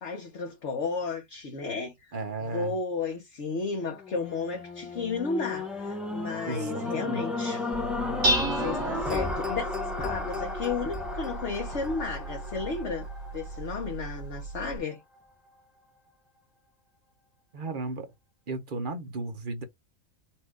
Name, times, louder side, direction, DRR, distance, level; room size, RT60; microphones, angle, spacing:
voice 1, 0.0-2.1 2.4-7.7 8.4-9.7 10.0-13.1 13.3-15.0, left 4 dB, 60° left, 1.3 m, -33 dB
voice 2, 2.1-2.7 6.5-7.2 17.5-18.1 18.5-19.6, right 3 dB, 45° right, 0.9 m, -34 dB
sound 1, 4.0-14.3 14.8-14.9, left 3 dB, ahead, 0.7 m, -34 dB
Dishes pots and pans, 7.7-14.8, right 1 dB, 25° right, 1.5 m, -34 dB
4.3 x 2.6 x 4.7 m
omnidirectional pair, 1.5 m